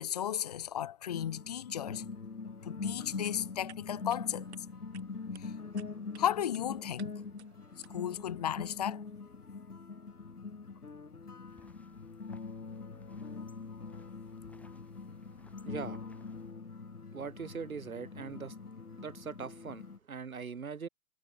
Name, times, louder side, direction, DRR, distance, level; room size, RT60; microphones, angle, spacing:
voice 1, 0.0-2.1 2.6-4.5 5.4-5.5 6.2-7.1 7.9-9.0, left 10 dB, 30° left, 0.6 m, -34 dB
sound 1, 1.1-20.0, left 4 dB, 85° left, 1.4 m, -43 dB
sound 2, 3.0-8.2, right 10 dB, 45° right, 2.5 m, -60 dB
sound 3, 11.5-16.5, left 2 dB, 5° left, 4.5 m, -65 dB
voice 2, 15.7-16.0 17.1-18.5 19.0-20.9, right 5 dB, 65° right, 2.8 m, -41 dB
figure-of-eight pair, 125°, 44 cm